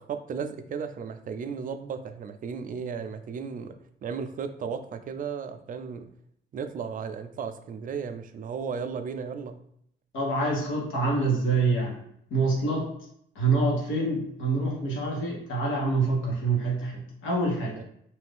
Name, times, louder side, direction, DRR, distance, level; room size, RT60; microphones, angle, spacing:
voice 1, 0.0-3.7 4.0-6.1 6.5-9.6 17.7-17.8, right 6 dB, 45° right, 8 dB, 0.4 m, -35 dB
voice 2, 10.1-12.0 12.3-12.9 13.3-17.8, right 3 dB, 80° left, -2 dB, 1.2 m, -26 dB
2.7 x 2.5 x 3.5 m, 0.71 s
cardioid pair, 90°, 20 cm